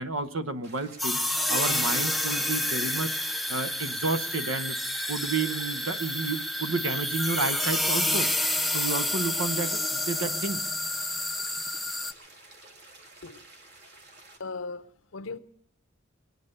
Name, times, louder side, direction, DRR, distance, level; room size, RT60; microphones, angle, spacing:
voice 1, 0.0-3.1 3.5-4.7 5.1-8.3 8.7-10.6, right 3 dB, 80° right, 1.0 m, -31 dB
sound 1, 0.6-14.4, right 2 dB, 55° right, 1.9 m, -52 dB
sound 2, 1.0-12.1, left 1 dB, ahead, 0.5 m, -29 dB
voice 2, 14.4-15.4, left 4 dB, 75° left, 0.7 m, -38 dB
22.5 x 9.3 x 6.6 m
head